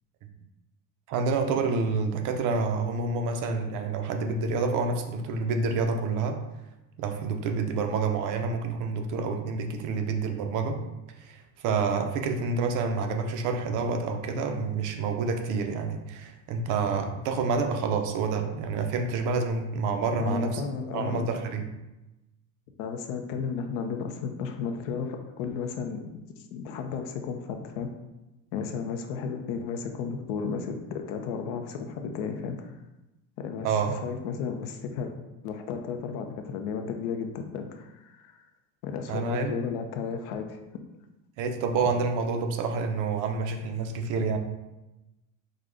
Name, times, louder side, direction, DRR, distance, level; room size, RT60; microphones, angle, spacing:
voice 1, 1.1-6.4 7.0-10.8 11.2-20.6 20.9-21.7 33.6-33.9 39.1-39.6 41.4-44.4, right 4 dB, 50° right, 5 dB, 0.6 m, -28 dB
voice 2, 20.2-21.3 22.8-26.0 26.5-27.9 28.5-32.7 33.4-35.1 35.4-38.4 38.8-40.6 41.8-41.9, left 6 dB, 90° left, 5 dB, 0.7 m, -33 dB
5.0 x 2.2 x 3.8 m, 0.99 s
cardioid pair, 160°, 39 cm